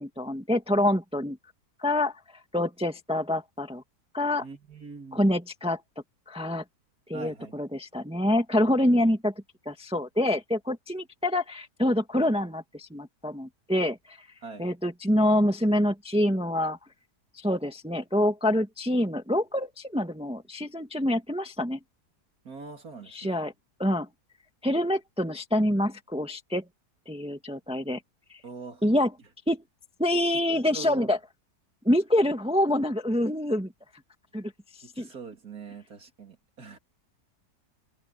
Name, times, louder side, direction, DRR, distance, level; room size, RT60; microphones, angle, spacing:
voice 1, 0.0-1.4 1.8-2.2 2.5-3.8 4.1-4.4 5.1-5.8 6.3-6.6 7.1-9.3 9.6-14.3 14.6-16.8 17.3-21.8 23.1-23.5 23.8-24.1 24.6-26.6 27.1-28.0 28.3-28.4 28.8-29.1 29.5-29.6 30.0-31.2 31.8-33.7 34.3-34.5 35.0-35.1, left 1 dB, 5° right, 1.5 m, -26 dB
voice 2, 4.4-5.2 7.1-7.5 14.4-14.7 22.5-23.4 28.4-28.8 30.3-30.4 30.7-31.1 34.8-36.8, right 4 dB, 60° right, 3.4 m, -42 dB
omnidirectional pair, 1.8 m